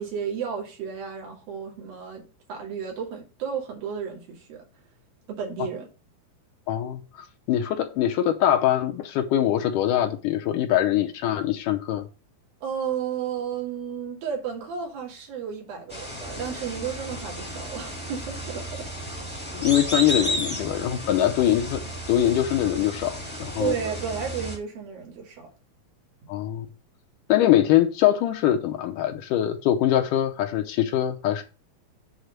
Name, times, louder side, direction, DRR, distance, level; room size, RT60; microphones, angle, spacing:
voice 1, 0.0-4.6 5.3-5.9 12.6-18.9 23.6-25.5, right 7 dB, 75° right, 4.1 m, -33 dB
voice 2, 6.7-7.0 7.5-12.1 19.5-21.8 22.1-23.8 26.3-26.7 27.3-31.4, left 11 dB, 75° left, 2.1 m, -23 dB
sound 1, 15.9-24.6, equal, 5° left, 1.2 m, -33 dB
8.1 x 4.0 x 6.4 m
omnidirectional pair, 4.1 m